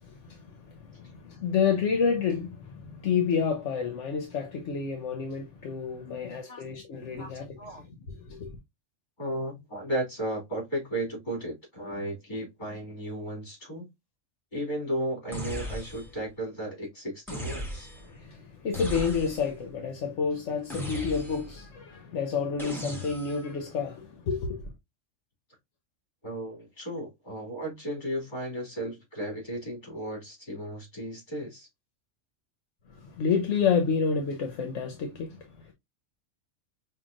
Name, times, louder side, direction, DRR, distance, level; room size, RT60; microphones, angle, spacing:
voice 1, 0.0-8.6 18.0-24.7 32.9-35.7, left 6 dB, 70° left, 1.1 m, -30 dB
voice 2, 6.0-6.6 6.9-7.8 9.2-13.9 14.5-17.9 26.2-31.7, right 1 dB, 40° left, 2.6 m, -35 dB
sound 1, 15.3-16.2 17.3-18.1 18.7-19.6 20.7-21.6 22.6-23.5, equal, ahead, 1.0 m, -37 dB
5.6 x 2.5 x 2.4 m
omnidirectional pair, 1.3 m